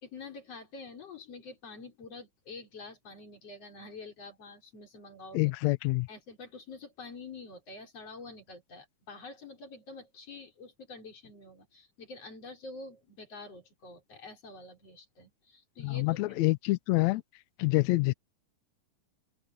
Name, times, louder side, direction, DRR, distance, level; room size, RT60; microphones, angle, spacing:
voice 1, 0.0-5.5 6.1-16.4, left 3 dB, 50° left, 5.6 m, -47 dB
voice 2, 5.3-6.1 15.8-17.2 17.6-18.1, left 21 dB, 80° left, 1.7 m, -26 dB
open air
omnidirectional pair, 3.7 m